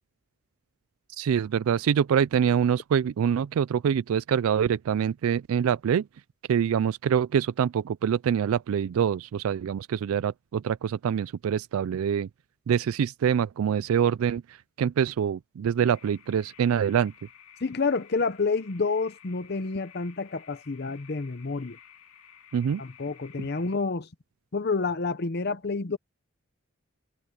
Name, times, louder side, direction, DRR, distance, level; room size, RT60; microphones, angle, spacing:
voice 1, 1.2-6.0 6.5-12.3 12.7-14.4 14.8-17.1 22.5-22.8 23.4-23.5, right 8 dB, 85° right, 0.3 m, -25 dB
sound 1, 15.8-23.8, left 8 dB, 85° left, 2.3 m, -54 dB
voice 2, 17.6-21.8 22.8-24.1 24.5-26.0, left 4 dB, 50° left, 0.7 m, -29 dB
head